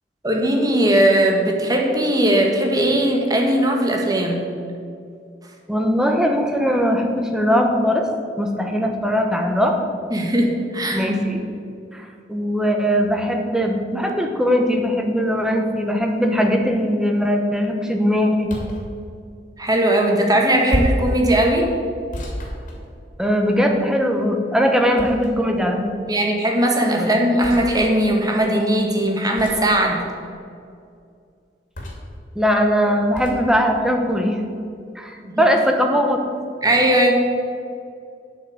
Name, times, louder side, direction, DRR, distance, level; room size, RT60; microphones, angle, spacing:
voice 1, 0.2-4.4 10.1-11.1 19.6-21.7 26.1-30.0 35.2-35.4 36.6-37.1, right 1 dB, 20° right, 1 dB, 1.5 m, -19 dB
voice 2, 5.7-8.0 8.4-9.7 10.9-11.4 11.9-18.5 23.2-25.9 27.0-27.1 32.3-34.4 34.9-36.2, equal, 5° right, 3 dB, 1.0 m, -20 dB
sound 1, 18.4-18.9 20.7-21.1 22.1-23.3 25.0-25.6 27.4-27.7 29.4-29.7 31.7-32.2 33.1-33.4, equal, 45° left, 2.6 m, -28 dB
8.8 x 6.1 x 8.0 m, 2.3 s
head